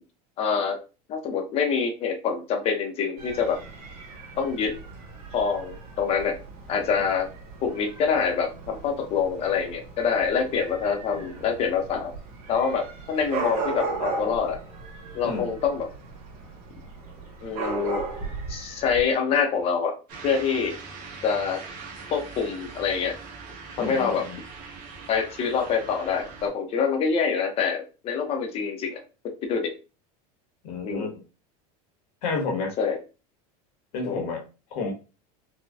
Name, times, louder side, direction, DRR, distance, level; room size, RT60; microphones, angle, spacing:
voice 1, 0.4-0.8 1.1-3.6 4.4-4.7 5.3-6.4 6.7-7.3 7.6-12.1 12.5-14.6 15.1-15.9 17.4-18.0 18.5-20.0 20.2-20.7 21.2-21.6 22.1-23.1 23.8-24.2 25.1-29.7 30.8-31.1 32.8-33.0 34.0-34.2, left 6 dB, 30° left, 3 dB, 0.6 m, -26 dB
Dog / Cat, 3.2-19.0, right 4 dB, 80° right, 1.3 m, -37 dB
sound 1, 20.1-26.5, right 4 dB, 45° right, 1.0 m, -42 dB
voice 2, 23.8-24.4 30.6-31.2 32.2-32.7 33.9-34.4 34.7-34.9, left 3 dB, 75° left, 1 dB, 1.2 m, -30 dB
4.0 x 2.2 x 2.3 m, 0.32 s
supercardioid pair, 155°, 20 cm